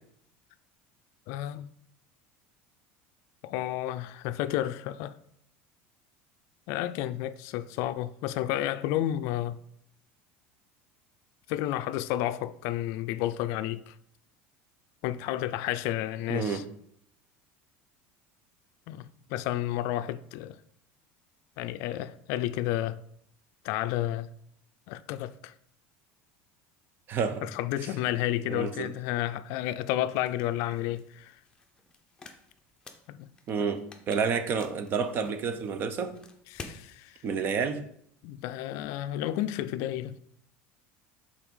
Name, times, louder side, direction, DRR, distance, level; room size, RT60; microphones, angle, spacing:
voice 1, 1.3-1.7 3.4-5.2 6.7-9.6 11.5-13.9 15.0-16.6 18.9-20.6 21.6-23.0 23.6-24.3 24.9-25.5 27.4-31.4 33.1-33.3 36.5-37.2 38.2-40.2, left 13 dB, 65° left, 0.4 m, -31 dB
voice 2, 16.3-16.6 27.1-27.5 28.5-28.9 33.5-36.2 37.2-37.9, right 5 dB, 40° right, 0.7 m, -29 dB
sound 1, 30.2-36.8, left 3 dB, 15° left, 0.8 m, -50 dB
5.9 x 4.1 x 5.4 m
supercardioid pair, 130°, 5 cm